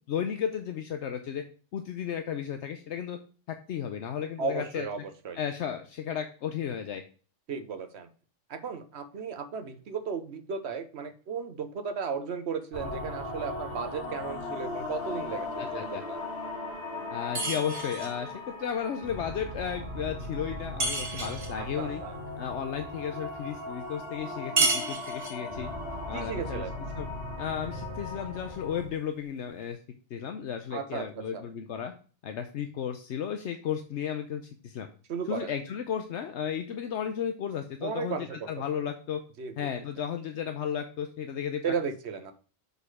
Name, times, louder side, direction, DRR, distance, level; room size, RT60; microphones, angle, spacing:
voice 1, 0.1-1.4 1.7-3.2 3.5-4.9 5.3-7.0 15.6-16.0 17.1-22.0 22.4-25.7 26.1-26.6 27.0-27.1 27.4-29.8 30.1-31.9 32.2-34.9 35.3-39.2 39.6-41.6, left 8 dB, 75° left, 7 dB, 1.0 m, -34 dB
voice 2, 4.4-5.0 5.2-5.4 7.5-8.1 8.5-16.2 21.6-22.2 26.1-26.7 30.7-31.4 35.1-35.5 37.8-38.5 39.4-39.7 41.6-42.3, right 5 dB, 65° right, 9 dB, 1.2 m, -35 dB
sound 1, 12.7-28.9, left 2 dB, 45° left, 3.3 m, -38 dB
sound 2, 17.3-18.2 20.8-21.6 24.6-25.5, right 3 dB, 50° right, 2.0 m, -29 dB
6.5 x 5.4 x 4.8 m, 0.39 s
omnidirectional pair, 1.2 m